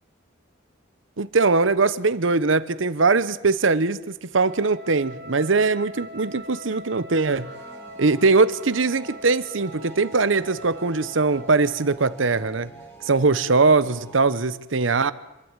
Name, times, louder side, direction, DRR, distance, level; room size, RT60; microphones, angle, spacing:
voice 1, 1.2-7.5 8.0-12.7 13.0-15.1, right 3 dB, 85° right, 15 dB, 0.9 m, -21 dB
Wind instrument woodwind instrument, 4.4-12.0, right 1 dB, 50° right, 2.0 m, -42 dB
sound 1, 7.3-14.4, right 3 dB, 10° left, 3.0 m, -46 dB
26.0 x 12.5 x 9.0 m, 1.0 s
head